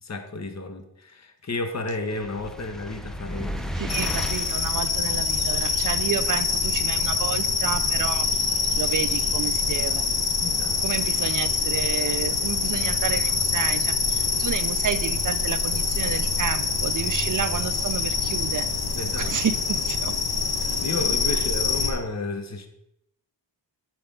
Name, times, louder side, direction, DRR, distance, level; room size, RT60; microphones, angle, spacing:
voice 1, 0.0-4.0 10.4-11.0 18.9-19.4 20.6-22.7, left 2 dB, 35° left, 6 dB, 1.1 m, -32 dB
sound 1, 2.1-4.7, equal, ahead, 0.6 m, -33 dB
voice 2, 3.7-8.3 8.8-10.1 10.8-18.7 19.2-20.1 21.3-21.4, right 8 dB, 45° right, 12 dB, 0.5 m, -30 dB
sound 2, 3.9-21.9, left 4 dB, 55° left, 1.2 m, -25 dB
9.9 x 4.3 x 5.3 m, 0.80 s
wide cardioid pair, 105°, 46 cm